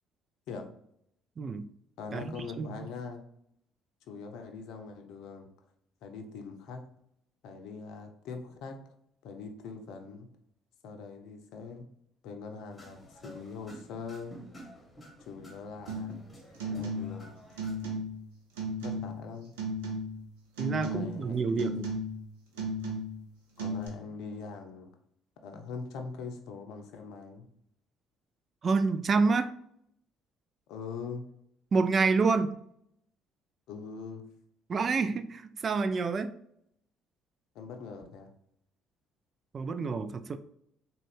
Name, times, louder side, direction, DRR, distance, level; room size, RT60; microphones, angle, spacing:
voice 1, 1.4-1.7 2.1-2.9 20.6-21.8 28.6-29.5 31.7-32.6 34.7-36.3 39.5-40.4, right 4 dB, 40° right, 0.3 m, -28 dB
voice 2, 2.0-3.2 4.0-5.5 6.0-6.9 7.4-8.8 9.2-10.3 10.8-11.9 12.2-14.4 15.3-16.2 16.6-17.4 18.8-19.5 20.8-21.8 22.6-22.7 23.6-25.0 25.4-27.5 30.7-31.3 33.7-34.2 37.5-38.3, left 5 dB, 65° left, 0.5 m, -42 dB
sound 1, 12.7-18.0, equal, 25° left, 1.1 m, -51 dB
sound 2, 15.9-16.2 16.5-17.2 17.6-18.3 18.6-19.2 19.6-20.3 20.6-21.2 21.6-22.3 22.6-23.2 23.6-23.9, right 1 dB, 80° right, 0.7 m, -35 dB
3.7 x 2.3 x 3.4 m
hypercardioid pair, 55°, 0 cm